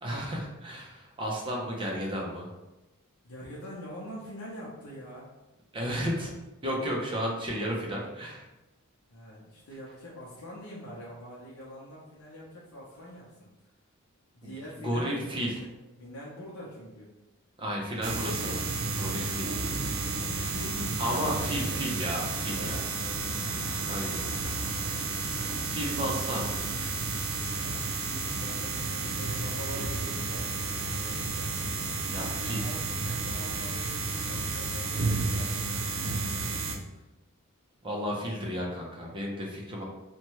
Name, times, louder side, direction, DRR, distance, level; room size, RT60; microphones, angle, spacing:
voice 1, 0.0-2.5 5.7-6.3 6.6-8.4 14.4-14.5 14.8-15.5 17.6-18.7 19.0-19.5 21.0-22.8 23.9-24.2 25.6-26.7 29.7-29.8 32.0-32.6 37.8-39.8, equal, 25° right, -2 dB, 0.6 m, -33 dB
voice 2, 3.2-5.2 9.1-13.3 14.3-15.7 16.0-17.1 20.1-21.4 21.7-23.4 27.4-31.9 32.2-36.3 39.6-39.7, equal, 80° left, -6 dB, 0.6 m, -44 dB
sound 1, 18.0-36.8, right 3 dB, 70° right, 0.5 m, -32 dB
2.9 x 2.2 x 2.9 m, 1.0 s
head